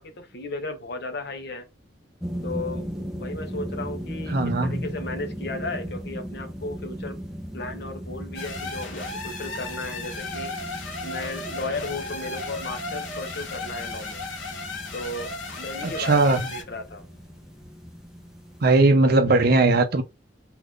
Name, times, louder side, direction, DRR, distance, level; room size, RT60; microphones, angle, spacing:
voice 1, 0.0-1.7 2.4-2.9 3.2-7.2 7.5-10.7 11.0-14.2 14.9-17.0, left 2 dB, 55° left, 0.7 m, -35 dB
sound 1, 2.2-18.8, equal, 5° right, 0.5 m, -37 dB
voice 2, 4.3-4.9 15.8-16.5 18.6-20.0, right 2 dB, 50° right, 0.6 m, -19 dB
sound 2, 8.3-16.6, left 2 dB, 75° left, 1.4 m, -35 dB
2.8 x 2.4 x 3.4 m
head